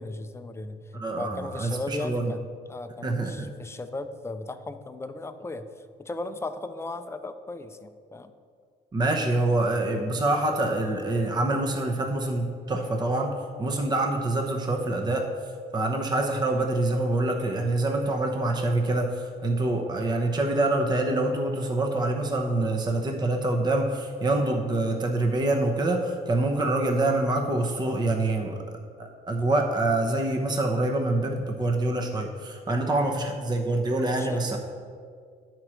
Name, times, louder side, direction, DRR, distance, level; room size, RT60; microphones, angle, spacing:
voice 1, 0.0-8.3 32.7-33.0 34.2-34.6, left 2 dB, 15° left, 9 dB, 0.5 m, -37 dB
voice 2, 0.9-2.3 3.0-3.5 8.9-15.3 15.7-28.6 29.0-34.6, right 2 dB, 25° right, 3 dB, 0.8 m, -26 dB
9.4 x 4.5 x 6.2 m, 2.1 s
cardioid pair, 110°, 17 cm